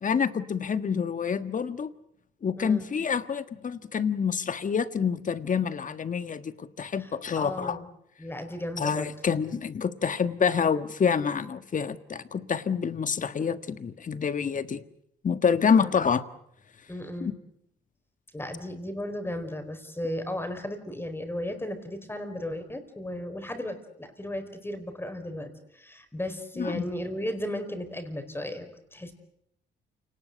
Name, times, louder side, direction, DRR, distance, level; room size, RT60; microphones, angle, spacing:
voice 1, 0.0-1.9 2.4-7.8 8.8-14.8 15.2-16.2 17.2-17.3 26.6-26.8, left 6 dB, 40° left, 12 dB, 1.5 m, -27 dB
voice 2, 2.6-2.9 7.0-7.9 8.2-9.1 15.7-15.9 16.9-17.3 18.3-29.1, left 1 dB, 10° left, 7 dB, 4.9 m, -35 dB
28.5 x 19.0 x 8.0 m, 0.75 s
cardioid pair, 90°, 20 cm